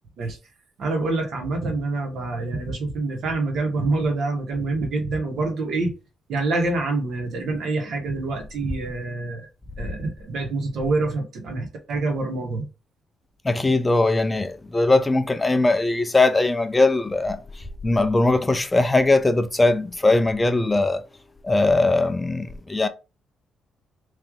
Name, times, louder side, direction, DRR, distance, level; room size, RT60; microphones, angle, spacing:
voice 1, 0.8-5.9 6.3-9.5 9.8-12.7, right 3 dB, 65° right, 1.4 m, -26 dB
voice 2, 13.4-17.4 17.8-21.0 21.4-22.9, left 2 dB, 20° left, 0.4 m, -20 dB
3.2 x 2.7 x 3.7 m
cardioid pair, 90°, 0 cm